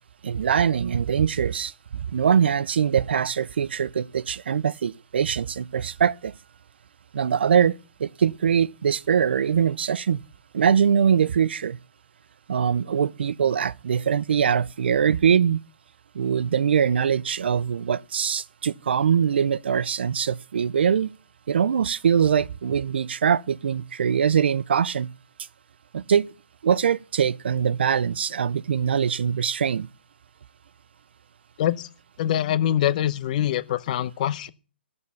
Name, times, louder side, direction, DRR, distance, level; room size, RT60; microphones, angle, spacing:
voice 1, 0.2-6.3 7.1-10.2 10.5-11.8 12.5-15.6 16.1-21.1 21.5-25.1 25.9-26.3 26.6-29.9, right 7 dB, 70° right, 0.5 m, -22 dB
voice 2, 32.2-34.5, left 11 dB, 45° left, 0.8 m, -24 dB
14.5 x 6.9 x 7.0 m
hypercardioid pair, 140°, 6 cm